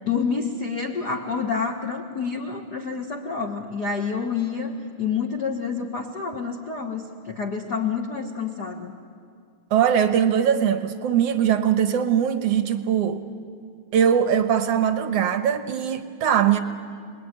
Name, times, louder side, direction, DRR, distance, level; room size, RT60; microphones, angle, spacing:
voice 1, 0.0-9.0, left 5 dB, 65° left, 2 dB, 1.0 m, -28 dB
voice 2, 9.7-13.2 13.9-16.6, right 9 dB, 65° right, 8 dB, 1.6 m, -21 dB
28.5 x 21.0 x 9.6 m, 2.3 s
omnidirectional pair, 4.0 m